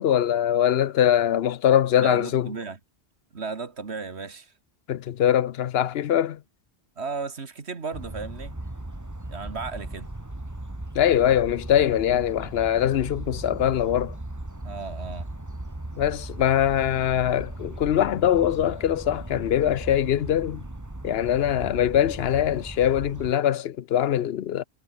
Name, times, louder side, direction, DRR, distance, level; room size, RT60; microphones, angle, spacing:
voice 1, 0.0-2.5 4.9-6.4 10.9-14.1 16.0-20.6 21.0-24.6, left 10 dB, 70° left, 0.9 m, -22 dB
voice 2, 2.0-2.8 3.3-4.5 7.0-8.5 9.3-10.1 14.6-15.3, right 4 dB, 80° right, 2.2 m, -35 dB
sound 1, 7.9-23.3, right 1 dB, 15° right, 1.9 m, -37 dB
omnidirectional pair, 1.1 m